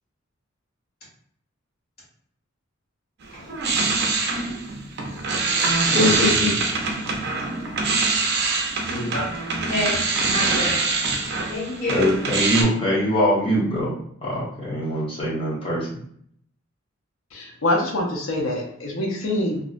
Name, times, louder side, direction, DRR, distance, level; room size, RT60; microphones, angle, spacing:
sound 1, 3.2-12.6, right 3 dB, 55° right, 0.5 m, -24 dB
voice 1, 5.9-7.0 8.2-8.6 8.9-9.4 9.7-10.9 11.5-12.2, left 2 dB, 50° left, -7 dB, 1.4 m, -26 dB
voice 2, 11.9-13.9 14.2-15.9, equal, 25° left, -6 dB, 0.9 m, -23 dB
voice 3, 17.3-19.6, left 1 dB, 80° left, -1 dB, 0.5 m, -25 dB
2.5 x 2.0 x 2.4 m, 0.65 s
head